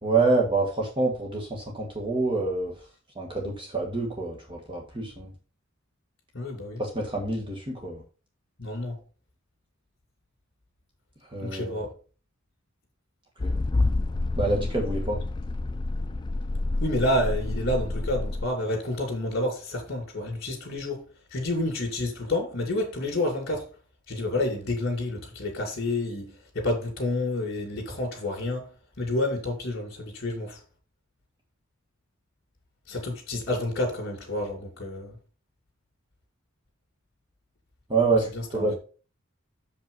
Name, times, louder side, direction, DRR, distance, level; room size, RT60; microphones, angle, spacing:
voice 1, 0.0-2.7 3.1-5.3 6.8-8.0 11.3-11.8 13.4-13.5 14.3-15.2 37.9-38.8, right 3 dB, 25° right, 1.4 m, -27 dB
voice 2, 6.3-6.8 8.6-9.0 11.4-11.9 16.8-21.0 21.3-23.7 24.1-30.6 32.9-35.2 38.3-38.8, left 1 dB, 55° left, 2.6 m, -29 dB
sound 1, 13.4-18.5, left 2 dB, 20° left, 0.3 m, -28 dB
6.8 x 5.3 x 5.4 m
head